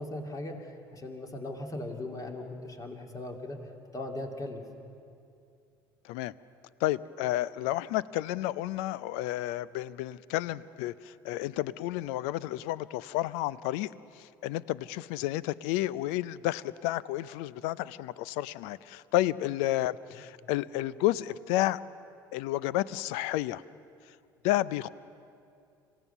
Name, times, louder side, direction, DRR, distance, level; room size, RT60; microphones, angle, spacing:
voice 1, 0.0-3.6 3.9-4.6, left 1 dB, 30° left, 3 dB, 2.8 m, -38 dB
voice 2, 6.8-21.8 22.3-23.6 24.4-24.9, left 15 dB, 65° left, 20 dB, 0.5 m, -31 dB
26.0 x 16.5 x 6.8 m, 2.5 s
hypercardioid pair, 65°, 12 cm